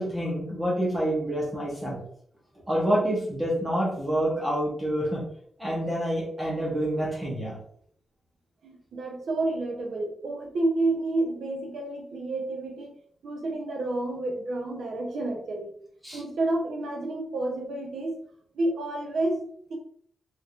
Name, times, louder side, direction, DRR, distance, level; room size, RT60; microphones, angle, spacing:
voice 1, 0.0-2.0 2.7-5.2 5.6-7.6 16.0-16.2, equal, 10° right, -5 dB, 0.8 m, -27 dB
voice 2, 8.6-12.9 13.2-15.7 16.1-18.2 18.6-19.8, right 2 dB, 70° right, 2 dB, 0.7 m, -30 dB
4.4 x 2.3 x 2.5 m, 0.63 s
wide cardioid pair, 170°, 0 cm